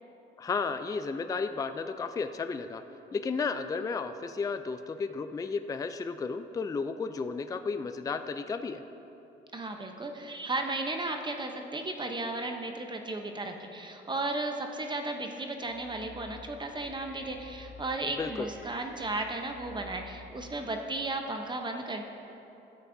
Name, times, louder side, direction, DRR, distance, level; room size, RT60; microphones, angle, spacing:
voice 1, 0.4-2.8 3.1-8.8 18.2-18.5, left 4 dB, 20° left, 9 dB, 0.3 m, -33 dB
voice 2, 9.5-22.0, right 2 dB, 25° right, 4 dB, 0.8 m, -35 dB
sound 1, 15.6-20.9, left 5 dB, 55° left, 1.2 m, -51 dB
13.0 x 8.1 x 2.7 m, 2.9 s
cardioid pair, 90°, 20 cm